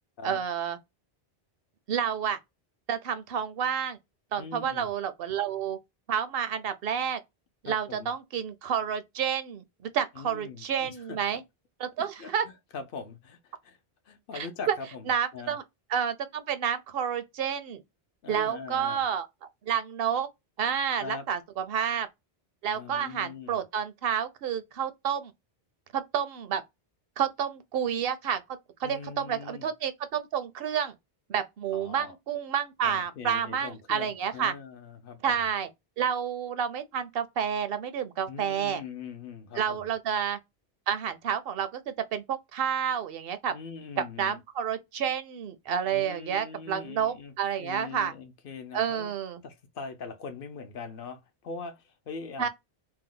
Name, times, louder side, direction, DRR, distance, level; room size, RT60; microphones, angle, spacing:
voice 1, 0.2-0.8 1.9-2.4 2.9-4.0 4.3-5.8 6.1-7.2 7.6-11.4 11.8-12.4 14.3-14.8 15.1-15.6 15.9-17.8 18.3-19.3 19.7-20.3 20.6-22.1 22.6-25.3 25.9-26.6 27.2-28.4 28.8-30.9 31.3-34.5 35.2-35.7 36.0-38.8 39.6-40.4 40.9-43.6 44.0-48.1 48.7-49.4 52.4-52.5, right 8 dB, 70° right, 0.7 m, -30 dB
voice 2, 4.4-4.9 7.6-8.1 10.2-11.2 12.0-12.3 12.7-13.8 14.1-15.1 15.3-15.6 18.2-19.0 21.0-21.3 22.7-23.6 28.8-29.7 31.7-32.2 32.8-35.4 38.3-39.9 43.5-44.4 45.8-47.3 47.6-49.1 49.4-52.5, left 5 dB, 65° left, 0.7 m, -41 dB
2.7 x 2.1 x 3.6 m
omnidirectional pair, 1.1 m